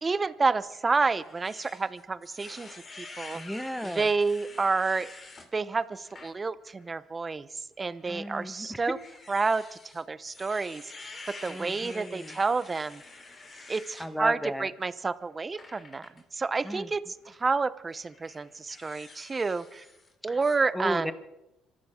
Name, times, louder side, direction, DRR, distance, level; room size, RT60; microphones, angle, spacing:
voice 1, 0.0-3.4 3.9-5.1 5.5-7.5 7.8-9.0 9.3-9.6 9.9-10.8 11.3-13.0 13.7-19.8 20.2-21.1, right 4 dB, 30° right, 16 dB, 0.9 m, -29 dB
sound 1, 0.7-5.5 6.0-6.3 6.8-6.9 7.9-14.1 15.6-16.2 17.2-17.4 17.9-20.1 20.4-20.6, left 3 dB, 35° left, 3.2 m, -48 dB
voice 2, 3.3-4.1 8.1-8.8 11.5-12.4 14.0-14.7 16.6-16.9 20.3-20.4 20.7-21.1, equal, ahead, 11 dB, 1.4 m, -35 dB
25.5 x 14.0 x 3.8 m, 0.91 s
supercardioid pair, 65°, 0 cm